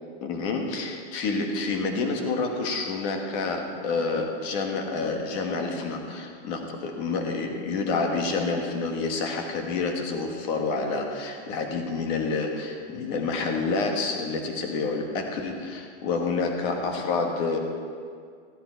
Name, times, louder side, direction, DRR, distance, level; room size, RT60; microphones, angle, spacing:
voice 1, 0.2-17.6, left 4 dB, 25° left, 3 dB, 1.3 m, -28 dB
15.0 x 13.0 x 4.5 m, 2.1 s
supercardioid pair, 175°, 36 cm